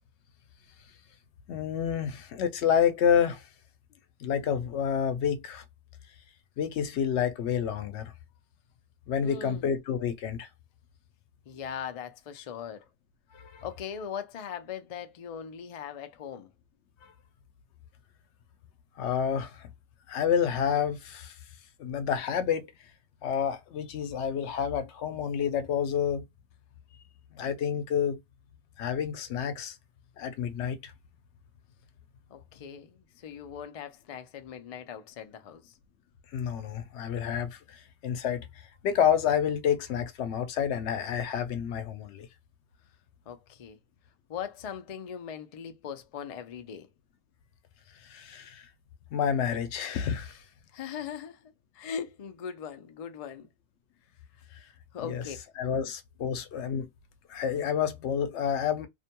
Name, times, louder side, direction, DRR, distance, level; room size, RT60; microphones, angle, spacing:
voice 1, 1.5-3.5 4.2-5.6 6.6-8.1 9.1-10.5 13.3-13.6 19.0-19.7 20.1-21.4 21.8-22.7 23.2-26.2 27.3-28.2 28.8-29.8 30.2-30.9 36.3-38.5 38.8-42.3 48.0-48.7 49.1-50.4 55.0-55.2 55.6-56.9 57.3-58.9, left 8 dB, 80° left, 0.9 m, -29 dB
voice 2, 9.2-9.7 11.5-12.9 13.6-16.5 32.3-35.7 43.3-43.8 44.3-46.9 50.7-53.5 54.9-55.4 56.2-56.3, left 8 dB, 55° left, 0.4 m, -40 dB
2.5 x 2.2 x 2.8 m
omnidirectional pair, 1.1 m